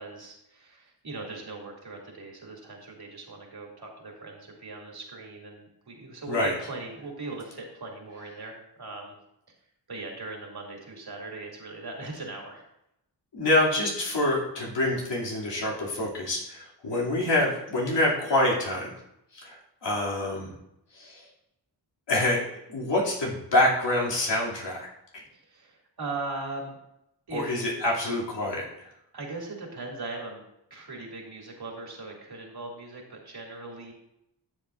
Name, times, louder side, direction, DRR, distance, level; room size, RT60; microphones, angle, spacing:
voice 1, 0.0-9.1 9.9-12.7 25.3-26.8 27.3-27.6 29.1-30.4 30.7-33.9, right 3 dB, 60° right, -1 dB, 2.5 m, -39 dB
voice 2, 13.3-18.9 19.3-20.5 20.9-21.2 22.1-22.4 22.7-24.9 27.3-28.9, left 1 dB, 85° left, -4 dB, 2.6 m, -26 dB
12.5 x 7.2 x 2.5 m, 0.82 s
wide cardioid pair, 75°, 42 cm